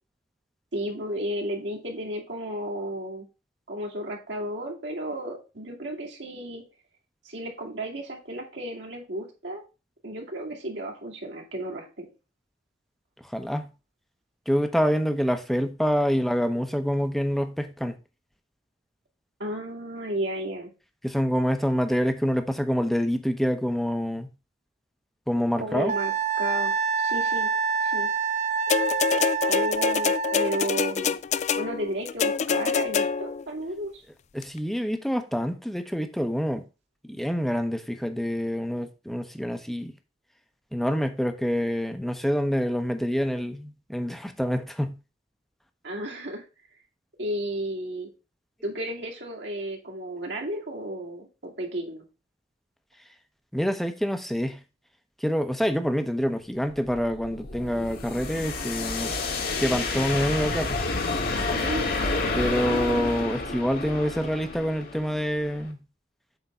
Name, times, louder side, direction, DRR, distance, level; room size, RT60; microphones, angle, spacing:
voice 1, 0.7-3.3 3.7-6.6 7.2-9.6 10.0-12.1 19.4-20.7 25.6-27.5 27.8-28.1 29.5-31.2 31.6-34.0 45.8-46.4 47.2-48.1 48.6-52.0 61.5-62.0, right 1 dB, 70° right, 2.4 m, -33 dB
voice 2, 13.3-13.7 14.5-18.0 21.0-24.3 25.3-25.9 34.3-36.6 37.1-39.9 40.7-44.9 53.5-54.6 55.2-59.1 59.6-60.8 62.4-65.8, equal, ahead, 0.8 m, -26 dB
Wind instrument woodwind instrument, 25.9-30.7, right 5 dB, 40° right, 0.6 m, -27 dB
sound 1, 28.7-33.4 34.4-34.5, left 6 dB, 40° left, 0.3 m, -25 dB
sound 2, 56.7-65.7, left 3 dB, 55° left, 1.5 m, -30 dB
7.9 x 3.6 x 5.5 m
head